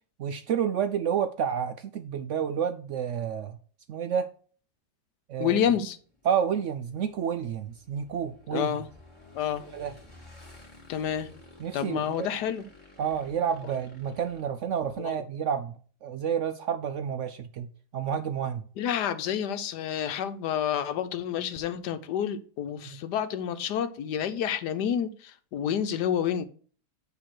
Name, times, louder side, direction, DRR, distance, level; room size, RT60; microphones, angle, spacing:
voice 1, 0.2-3.6 3.9-4.3 5.3-5.6 6.2-8.7 9.7-9.9 11.6-12.3 13.0-18.6 22.9-23.0, right 8 dB, 75° right, 0.6 m, -30 dB
voice 2, 5.4-6.0 8.5-8.9 9.3-9.6 10.9-11.3 11.7-12.6 15.0-15.2 18.8-26.4, left 9 dB, 80° left, 1.3 m, -29 dB
Motorcycle / Engine, 5.9-15.2, left 2 dB, 15° left, 2.0 m, -53 dB
8.8 x 3.2 x 6.0 m
omnidirectional pair, 1.8 m